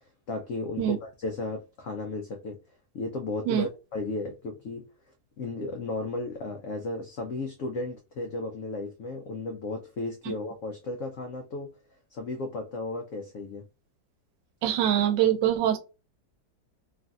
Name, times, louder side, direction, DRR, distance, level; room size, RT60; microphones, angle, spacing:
voice 1, 0.3-2.6 2.9-4.9 5.4-11.7 12.1-13.6, left 2 dB, 90° left, 0.6 m, -34 dB
voice 2, 14.6-15.8, right 11 dB, 80° right, 1.3 m, -23 dB
3.1 x 2.5 x 2.3 m
omnidirectional pair, 2.0 m